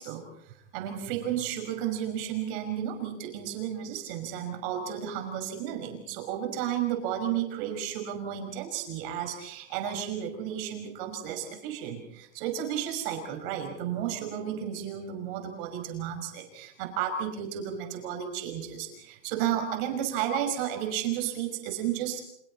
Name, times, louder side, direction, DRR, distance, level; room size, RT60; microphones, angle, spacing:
voice 1, 0.0-22.2, right 9 dB, 40° right, 4 dB, 5.7 m, -33 dB
30.0 x 28.5 x 4.3 m, 0.73 s
supercardioid pair, 165°, 39 cm